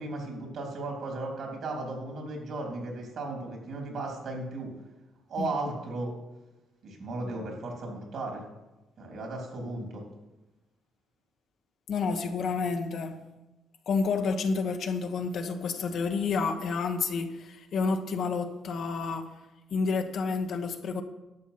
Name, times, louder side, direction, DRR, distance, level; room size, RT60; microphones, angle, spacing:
voice 1, 0.0-4.7 5.3-6.1 6.8-8.4 9.0-10.0, right 2 dB, 65° right, 3.4 m, -35 dB
voice 2, 11.9-13.2 13.9-19.3 19.7-21.0, left 4 dB, 65° left, 1.2 m, -29 dB
11.5 x 7.3 x 5.8 m
cardioid pair, 90°, 0 cm